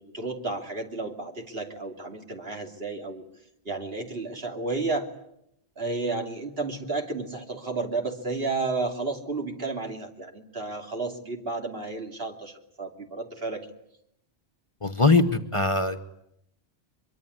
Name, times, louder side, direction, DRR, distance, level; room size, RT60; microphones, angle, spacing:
voice 1, 0.0-3.2 3.6-5.1 5.8-13.7, right 3 dB, 60° right, 3 dB, 3.1 m, -32 dB
voice 2, 14.8-16.0, left 3 dB, 30° left, 7 dB, 1.3 m, -22 dB
23.5 x 23.5 x 9.7 m, 0.77 s
omnidirectional pair, 1.1 m